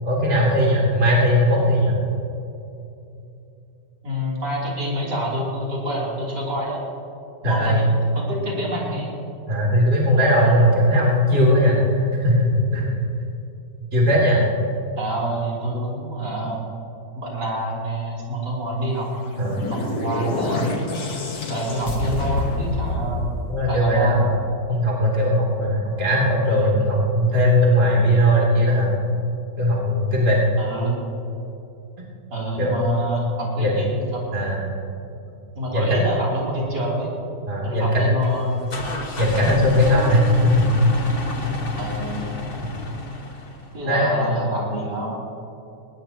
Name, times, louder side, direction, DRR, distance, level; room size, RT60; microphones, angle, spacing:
voice 1, 0.0-1.9 7.4-7.8 9.5-13.0 13.9-14.4 19.4-19.7 23.5-24.3 24.7-28.9 29.6-30.4 32.6-32.9 33.6-33.8 34.3-34.7 35.7-36.0 37.5-38.3 39.2-40.7 43.9-44.3, equal, 30° right, -5 dB, 3.5 m, -19 dB
voice 2, 4.0-6.8 7.4-7.8 8.1-9.1 14.0-14.2 15.0-16.6 17.2-20.7 21.5-23.3 23.7-24.3 30.6-31.0 32.3-34.3 35.6-37.1 37.6-38.6 41.8-42.2 43.7-45.2, right 1 dB, 65° right, -6 dB, 4.2 m, -27 dB
sound 1, 19.0-24.4, left 2 dB, 60° left, 2.2 m, -27 dB
sound 2, 38.2-43.8, left 3 dB, 35° left, 1.5 m, -30 dB
21.0 x 19.0 x 3.0 m, 2.8 s
omnidirectional pair, 1.9 m